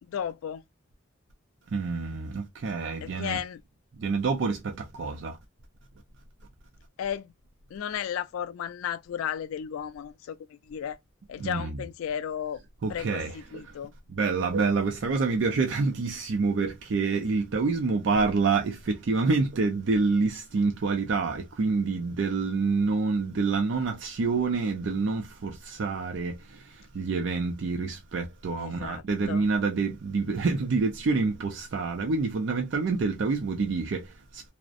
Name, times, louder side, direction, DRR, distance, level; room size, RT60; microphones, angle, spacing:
voice 1, 0.0-0.6 3.0-3.6 7.0-7.3 7.7-11.0 11.3-12.6 12.9-13.9 28.6-29.5, left 9 dB, 85° left, 0.3 m, -34 dB
voice 2, 1.7-3.4 4.0-5.4 11.4-11.8 12.8-13.4 13.7-13.8 14.1-34.5, right 4 dB, 60° right, 0.4 m, -27 dB
2.5 x 2.0 x 2.4 m
head